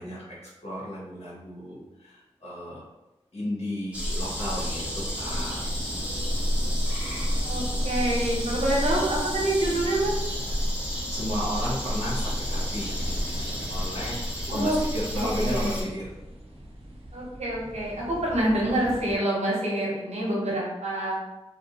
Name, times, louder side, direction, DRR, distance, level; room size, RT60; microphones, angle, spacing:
voice 1, 0.0-2.8 3.3-5.6 11.1-13.0 13.7-16.1, equal, 70° left, -7 dB, 1.0 m, -33 dB
sound 1, 3.9-15.8, equal, 10° right, 0.7 m, -29 dB
sound 2, 4.2-19.2, right 1 dB, 55° right, 0.7 m, -40 dB
voice 2, 7.4-10.1 14.5-14.8 15.1-15.8 17.1-21.1, right 1 dB, 85° right, -4 dB, 0.8 m, -27 dB
2.5 x 2.1 x 2.7 m, 1.0 s
wide cardioid pair, 75°, 11 cm